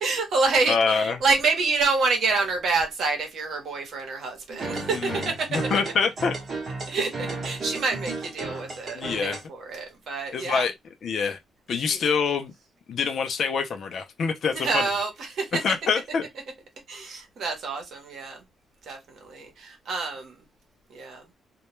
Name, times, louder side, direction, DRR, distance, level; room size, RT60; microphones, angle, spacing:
voice 1, 0.0-5.6 5.8-5.9 6.9-10.7 11.7-12.0 14.5-15.6 16.9-18.4 18.8-20.4 20.9-21.2, right 4 dB, 60° right, 0.9 m, -27 dB
voice 2, 0.7-1.2 4.9-5.2 5.5-6.4 8.9-9.4 10.3-10.7 11.0-11.4 11.7-12.5 12.9-14.8 15.6-16.2, left 5 dB, 50° left, 0.4 m, -25 dB
sound 1, 4.5-9.4, right 3 dB, 35° right, 0.9 m, -34 dB
2.2 x 2.1 x 2.9 m
cardioid pair, 165°, 0 cm